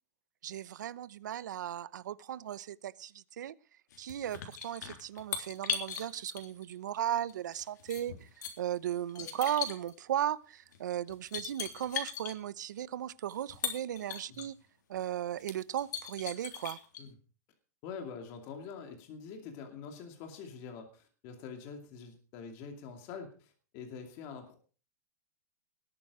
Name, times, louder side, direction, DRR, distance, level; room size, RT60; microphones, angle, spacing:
voice 1, 0.4-3.5 4.0-8.3 8.6-14.6 14.9-16.8, right 11 dB, 90° right, 18 dB, 0.9 m, -36 dB
sound 1, 3.9-6.7 7.3-8.5 9.1-9.9 10.7-10.8 11.1-12.3 13.3-14.5 14.9-15.0 15.4-17.0, left 7 dB, 80° left, 3.6 m, -38 dB
voice 2, 17.8-24.6, left 6 dB, 30° left, 4 dB, 2.5 m, -45 dB
20.0 x 9.0 x 4.9 m, 0.37 s
supercardioid pair, 175°, 10 cm